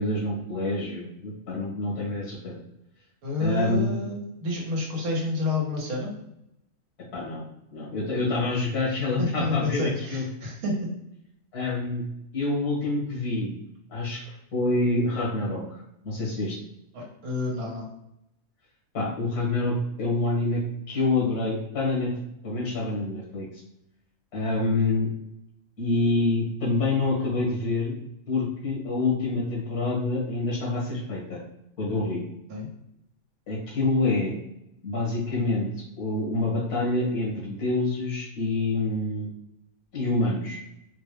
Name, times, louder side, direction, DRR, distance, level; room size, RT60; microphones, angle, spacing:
voice 1, 0.0-2.6 3.4-3.9 7.1-7.4 7.7-10.2 11.5-12.0 12.3-13.6 13.9-14.2 14.5-16.6 18.9-20.6 20.9-22.1 22.4-23.5 24.3-25.1 25.8-27.9 28.3-31.4 31.8-32.2 33.5-34.3 34.8-35.7 36.0-39.3 39.9-40.6, left 2 dB, 90° left, -4 dB, 1.9 m, -27 dB
voice 2, 3.2-6.1 9.2-10.8 16.9-17.9 32.5-32.7, left 2 dB, 75° right, -1 dB, 1.5 m, -29 dB
4.6 x 2.2 x 3.2 m, 0.80 s
omnidirectional pair, 1.6 m